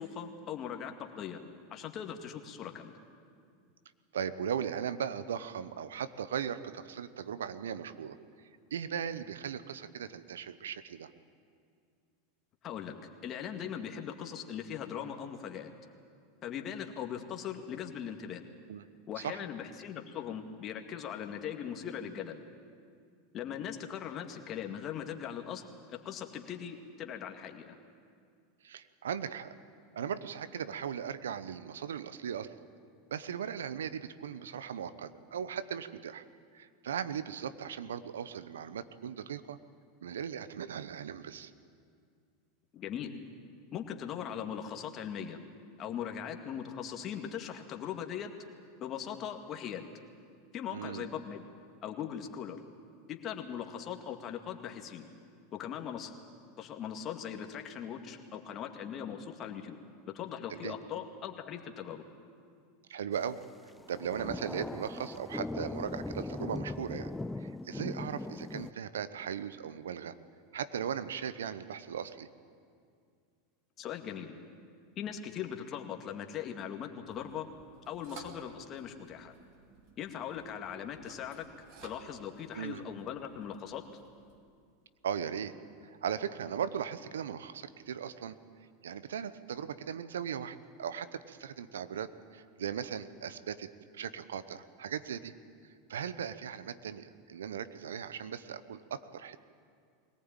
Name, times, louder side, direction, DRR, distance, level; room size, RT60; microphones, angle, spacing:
voice 1, 0.0-1.4 1.7-3.0 12.6-12.9 13.2-15.7 16.4-18.4 19.1-22.4 23.3-25.6 25.9-27.8 42.7-43.1 43.7-45.4 45.8-48.3 48.8-49.9 50.5-51.5 51.8-52.6 53.1-55.0 55.5-56.1 56.6-59.8 60.1-62.0 73.8-74.3 75.0-77.5 77.9-79.3 80.0-81.5 81.8-83.8, left 9 dB, 40° left, 4 dB, 2.1 m, -40 dB
voice 2, 4.1-8.2 8.7-11.1 18.7-18.8 19.2-19.4 28.6-29.5 29.9-32.5 33.1-36.2 36.5-39.6 40.0-41.5 50.7-51.1 60.5-60.7 62.9-63.4 63.9-67.1 67.4-70.2 70.5-72.3 82.5-82.8 85.0-85.5 85.8-88.4 88.8-93.7 93.9-95.3 95.9-99.4, right 8 dB, 80° right, 13 dB, 0.9 m, -38 dB
sound 1, 63.8-68.7, left 2 dB, 10° left, 0.5 m, -39 dB
sound 2, 77.1-84.4, right 5 dB, 55° right, 2.9 m, -56 dB
21.5 x 18.5 x 9.0 m, 2.3 s
hypercardioid pair, 90°, 0 cm